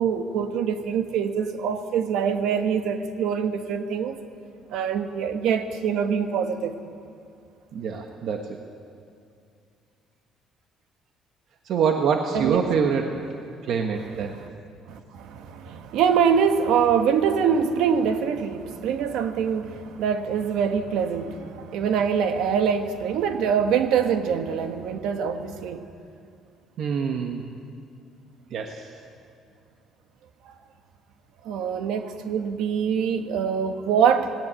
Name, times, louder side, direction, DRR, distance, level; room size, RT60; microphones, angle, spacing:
voice 1, 0.0-4.2 4.7-6.7 12.3-12.6 14.0-14.5 14.9-25.8 31.4-34.3, right 7 dB, 75° right, 7 dB, 1.5 m, -24 dB
voice 2, 7.7-8.6 11.7-13.2 13.7-14.3 26.8-27.4 28.5-28.8, right 6 dB, 55° right, 3 dB, 1.3 m, -25 dB
18.5 x 16.5 x 9.9 m, 2.4 s
cardioid pair, 160°, 0 cm